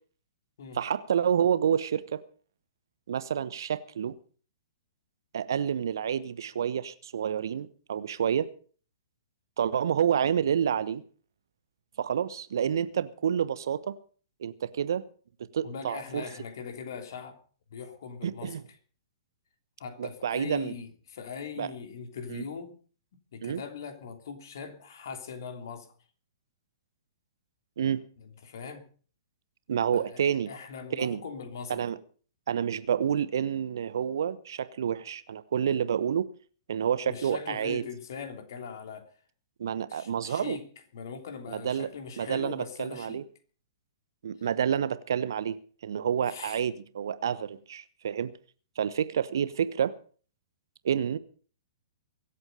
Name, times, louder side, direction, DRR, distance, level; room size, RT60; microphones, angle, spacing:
voice 1, 0.7-2.2 3.1-4.2 5.3-8.5 9.6-11.0 12.0-14.0 14.4-15.0 15.5-16.2 18.2-18.6 20.0-20.7 21.6-21.7 22.3-22.4 23.4-23.6 27.8-28.0 29.7-30.5 30.9-31.2 31.7-32.0 32.5-36.3 36.7-37.8 39.6-40.6 41.5-41.9 42.2-43.2 44.2-45.6 45.8-48.3 48.8-49.9 50.8-51.2, right 8 dB, 60° right, 1.0 m, -29 dB
voice 2, 15.6-17.4 17.7-18.6 19.8-22.8 23.3-25.9 28.2-28.8 29.9-31.8 37.0-39.1 39.9-40.7 40.9-43.2 46.3-46.6, left 6 dB, 55° left, 3.1 m, -40 dB
23.5 x 8.4 x 5.4 m
figure-of-eight pair, 115°, 2 cm